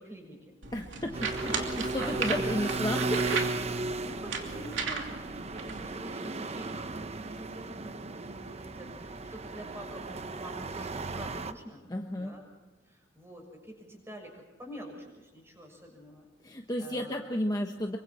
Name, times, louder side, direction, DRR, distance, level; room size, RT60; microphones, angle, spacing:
voice 1, 0.0-0.5 1.0-2.6 3.5-11.8 12.2-12.4 12.9-16.3 16.6-17.3, equal, 15° right, 1 dB, 6.6 m, -47 dB
sound 1, 0.6-6.0, right 4 dB, 75° right, 2.8 m, -36 dB
voice 2, 0.7-3.4 11.9-12.4 16.4-18.0, left 1 dB, 20° left, 3 dB, 1.2 m, -33 dB
sound 2, 1.1-11.5, right 3 dB, 35° right, 0.9 m, -35 dB
27.0 x 24.0 x 4.3 m, 1.1 s
head